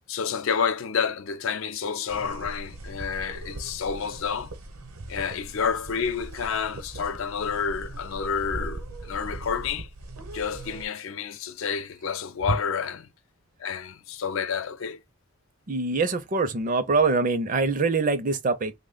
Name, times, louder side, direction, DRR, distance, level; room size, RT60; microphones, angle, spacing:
voice 1, 0.1-4.5 5.1-9.9 10.3-13.1 13.6-15.0, left 6 dB, 60° left, 0.4 m, -29 dB
sound 1, 2.1-10.9, right 2 dB, 75° right, 0.9 m, -40 dB
voice 2, 15.7-18.7, right 3 dB, 35° right, 0.5 m, -24 dB
3.0 x 2.1 x 3.8 m
head